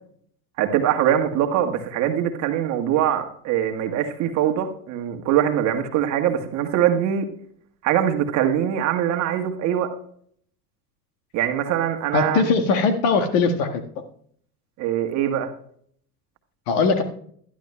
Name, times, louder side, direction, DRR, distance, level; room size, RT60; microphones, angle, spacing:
voice 1, 0.6-7.3 7.8-9.9 11.3-12.4 14.8-15.5, right 10 dB, 35° right, 5 dB, 1.5 m, -22 dB
voice 2, 12.1-13.8 16.7-17.0, left 4 dB, 45° left, 6 dB, 1.6 m, -20 dB
21.0 x 12.5 x 2.2 m, 0.63 s
figure-of-eight pair, 80°, 49 cm